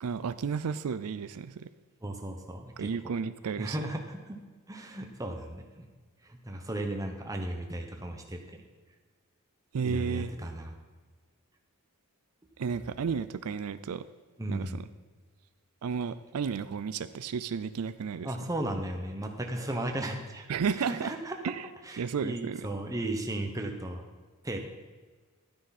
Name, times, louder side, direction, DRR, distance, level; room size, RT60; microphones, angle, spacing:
voice 1, 0.0-1.7 2.8-3.8 9.7-10.3 12.6-14.0 14.5-14.8 15.8-18.3 20.5-21.1 21.4-21.6 22.0-22.7, right 6 dB, 80° right, 13 dB, 0.4 m, -32 dB
voice 2, 2.0-3.1 3.6-4.4 4.7-5.9 6.2-8.6 9.8-10.7 14.4-14.8 18.2-20.5 20.8-21.5 21.8-24.0 24.4-24.6, right 1 dB, 15° right, 3 dB, 1.0 m, -35 dB
12.0 x 9.5 x 4.2 m, 1.4 s
head